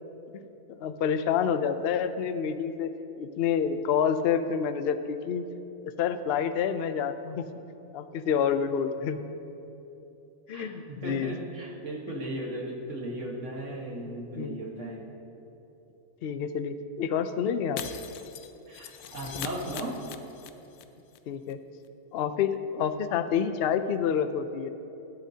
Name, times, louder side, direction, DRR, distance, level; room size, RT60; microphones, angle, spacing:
voice 1, 0.7-5.4 5.8-7.5 7.9-9.2 10.5-11.3 14.1-14.6 16.2-17.8 21.3-21.6 22.1-24.7, left 7 dB, 65° left, 10 dB, 0.6 m, -28 dB
voice 2, 10.5-15.0 18.7-19.9, right 1 dB, 55° right, -1 dB, 1.8 m, -36 dB
Shatter, 17.8-20.8 21.1-21.2 21.5-21.6, left 9 dB, 85° left, 1.1 m, -40 dB
17.5 x 11.5 x 2.8 m, 2.9 s
omnidirectional pair, 1.6 m